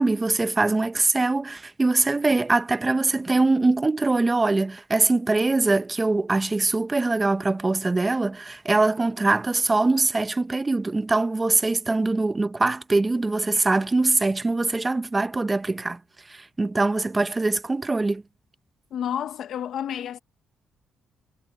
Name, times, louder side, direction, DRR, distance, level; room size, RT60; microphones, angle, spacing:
voice 1, 0.0-16.0 16.3-18.2, right 3 dB, 20° right, 1.0 m, -23 dB
voice 2, 18.9-20.2, left 9 dB, 70° left, 1.5 m, -30 dB
cardioid pair, 90°, 0 cm